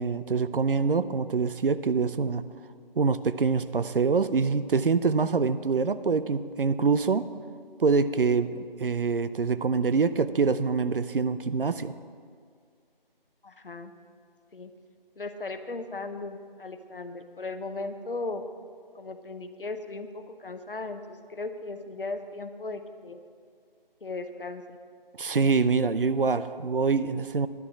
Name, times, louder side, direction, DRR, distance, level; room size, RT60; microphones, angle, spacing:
voice 1, 0.0-2.5 3.0-7.3 7.8-11.9 25.2-27.5, right 4 dB, 65° right, 14 dB, 0.5 m, -25 dB
voice 2, 13.4-13.9 14.5-14.7 15.2-18.5 18.9-23.2 24.0-24.8, left 3 dB, 65° left, 9 dB, 0.9 m, -37 dB
10.5 x 6.3 x 7.1 m, 2.1 s
figure-of-eight pair, 160°, 29 cm